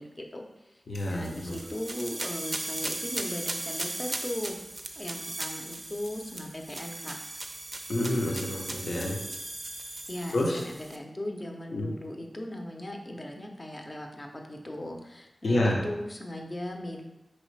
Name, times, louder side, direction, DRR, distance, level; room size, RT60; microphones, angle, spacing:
voice 1, 0.0-0.8 1.1-4.6 5.0-7.2 10.1-17.0, left 1 dB, 30° left, 2 dB, 0.6 m, -38 dB
voice 2, 0.9-1.5 7.9-9.2 10.3-10.6 11.7-11.9 15.4-15.8, left 1 dB, 75° left, -1 dB, 0.8 m, -28 dB
sound 1, 1.0-11.0, right 2 dB, 40° right, 0.4 m, -37 dB
4.3 x 3.1 x 3.2 m, 0.96 s
cardioid pair, 55°, 0 cm